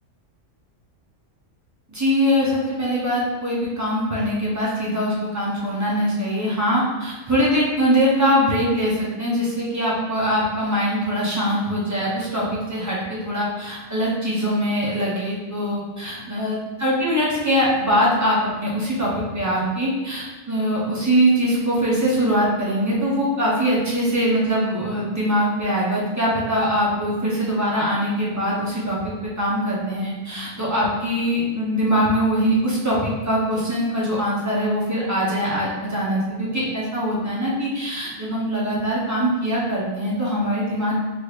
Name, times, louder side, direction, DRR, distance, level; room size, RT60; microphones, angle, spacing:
voice 1, 1.9-29.0 29.4-40.9, equal, 30° right, -7 dB, 0.3 m, -22 dB
3.4 x 3.1 x 2.3 m, 1.3 s
omnidirectional pair, 1.4 m